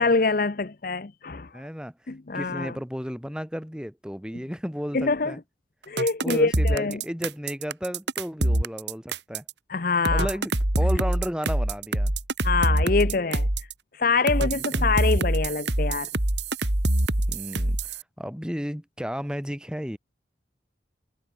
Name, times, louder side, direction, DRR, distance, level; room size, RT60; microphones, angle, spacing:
voice 1, 0.0-1.5 2.1-2.7 4.9-5.3 5.9-7.0 9.7-10.3 12.4-13.5 13.9-16.1, left 4 dB, 50° left, 0.7 m, -25 dB
voice 2, 1.5-1.9 2.3-5.4 6.2-9.4 10.1-12.1 14.5-14.8 17.3-20.0, equal, 5° right, 3.2 m, -33 dB
sound 1, 6.0-9.5 10.0-13.7 14.3-18.0, right 1 dB, 75° right, 3.0 m, -24 dB
head